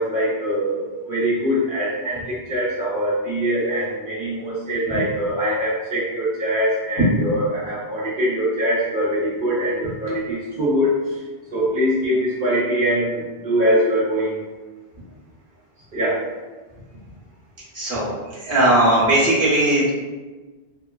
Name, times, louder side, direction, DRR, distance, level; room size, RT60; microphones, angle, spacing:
voice 1, 0.0-11.2 11.5-14.4 15.9-16.2 18.6-18.7, equal, 60° right, -7 dB, 0.8 m, -23 dB
voice 2, 17.7-18.1 18.4-19.9, right 1 dB, 15° right, -8 dB, 0.8 m, -18 dB
3.1 x 2.1 x 2.2 m, 1.3 s
omnidirectional pair, 1.1 m